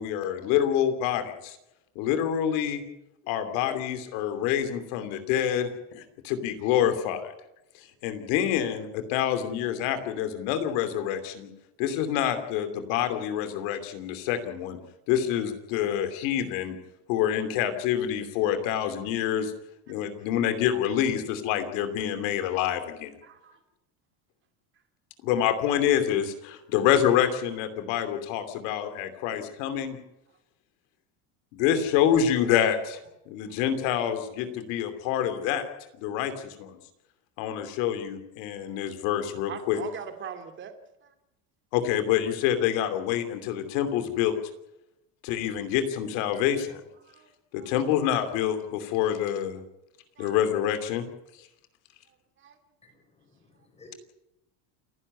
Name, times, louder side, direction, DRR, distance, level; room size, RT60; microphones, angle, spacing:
voice 1, 0.0-1.6 1.9-2.8 3.3-7.3 8.0-11.5 11.8-14.8 15.1-16.7 17.1-19.5 19.9-23.1 25.2-30.0 31.5-33.0 33.3-35.6 36.0-36.8 37.4-39.8 41.7-44.4 45.2-46.8 47.5-49.6 50.2-51.0, left 10 dB, 75° left, 8 dB, 2.9 m, -27 dB
voice 2, 23.2-23.6 33.5-33.6 39.5-40.7 47.0-47.3 47.6-47.7 50.2-50.4 52.4-52.6, right 8 dB, 30° right, 7 dB, 2.3 m, -41 dB
voice 3, 53.2-54.0, left 2 dB, 15° left, 4 dB, 5.3 m, -54 dB
28.5 x 11.0 x 9.6 m, 0.91 s
cardioid pair, 160°, 38 cm